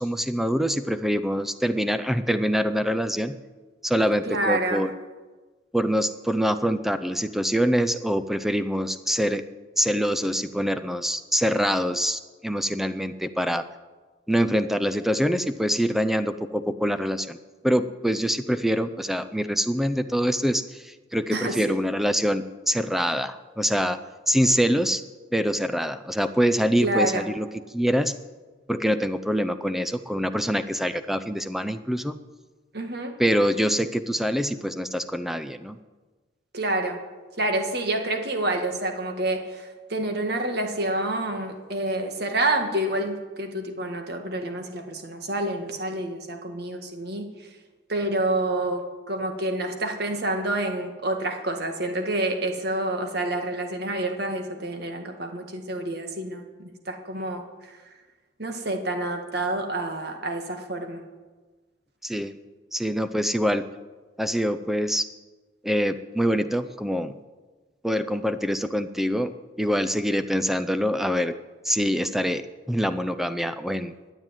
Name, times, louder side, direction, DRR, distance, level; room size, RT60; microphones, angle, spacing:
voice 1, 0.0-3.4 3.8-4.9 5.7-9.5 9.8-13.6 14.3-17.4 17.6-24.0 24.3-25.0 25.3-27.5 27.7-28.1 28.7-32.2 33.2-35.8 62.0-62.4 62.7-63.6 64.2-65.1 65.6-67.2 67.8-71.3 71.6-73.9, equal, ahead, 11 dB, 0.5 m, -25 dB
voice 2, 4.3-4.8 21.3-21.6 26.8-27.3 32.7-33.2 36.5-37.0 37.4-47.3 47.9-57.4 58.4-61.0, right 1 dB, 55° right, 5 dB, 1.8 m, -28 dB
12.5 x 9.0 x 9.1 m, 1.3 s
head